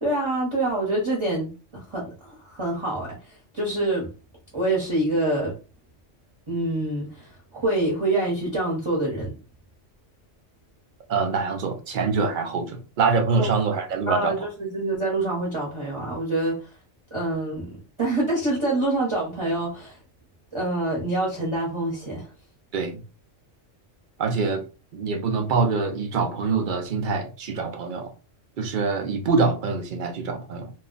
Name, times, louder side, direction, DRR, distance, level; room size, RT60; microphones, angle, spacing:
voice 1, 0.0-4.1 4.5-5.5 6.5-9.3 13.4-13.5 13.7-16.7 17.1-20.0 20.5-22.3, right 2 dB, 25° right, 0.8 m, -26 dB
voice 2, 11.1-14.3 22.7-23.0 24.2-24.7 24.9-28.1 28.6-30.7, right 4 dB, 55° right, 0.6 m, -25 dB
2.3 x 2.2 x 3.7 m
omnidirectional pair, 1.2 m